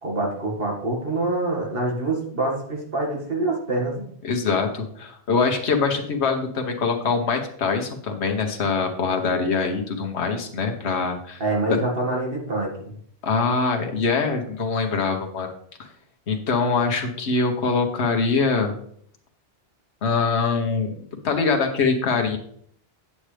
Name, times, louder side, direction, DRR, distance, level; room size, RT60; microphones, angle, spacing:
voice 1, 0.0-4.0 11.4-12.9, right 2 dB, 55° right, -1 dB, 2.2 m, -25 dB
voice 2, 4.2-11.4 11.7-11.8 13.2-15.5 16.3-18.7 20.0-20.9 21.2-22.4, left 4 dB, 75° left, 4 dB, 1.3 m, -23 dB
8.6 x 7.5 x 3.3 m, 0.63 s
omnidirectional pair, 1.1 m